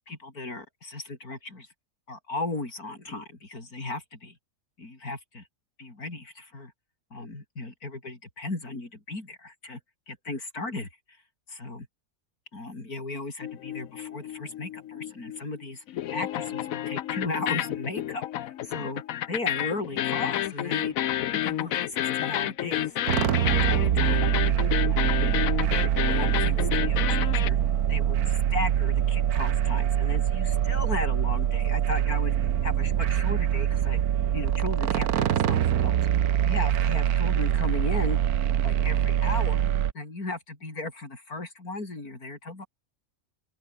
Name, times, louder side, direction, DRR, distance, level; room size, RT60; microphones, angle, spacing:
voice 1, 0.1-1.7 2.1-4.3 4.8-5.4 5.8-6.7 7.1-9.8 10.1-10.9 11.5-11.9 12.5-15.8 16.1-19.0 19.3-21.0 21.3-22.9 23.3-24.2 24.9-25.2 26.1-27.6 27.9-32.4 32.6-34.0 34.3-35.9 36.4-38.2 38.6-39.7 39.9-42.7, left 2 dB, 85° left, 5.7 m, -36 dB
sound 1, 13.4-15.6 15.9-27.5, left 12 dB, 70° left, 1.1 m, -30 dB
sound 2, 23.1-39.9, right 10 dB, 85° right, 1.5 m, -24 dB
open air
omnidirectional pair, 1.5 m